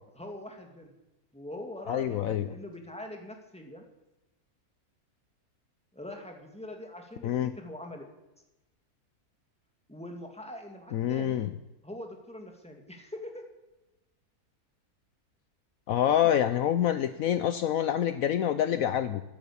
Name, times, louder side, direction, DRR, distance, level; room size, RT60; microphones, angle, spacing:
voice 1, 0.1-0.9 1.3-3.8 5.9-7.3 7.6-8.1 9.9-11.5 11.8-13.4, left 1 dB, 5° left, 2 dB, 2.3 m, -43 dB
voice 2, 1.9-2.5 7.2-7.5 10.9-11.5 15.9-19.2, left 10 dB, 70° left, 12 dB, 1.0 m, -26 dB
14.0 x 11.0 x 8.6 m, 1.0 s
omnidirectional pair, 1.6 m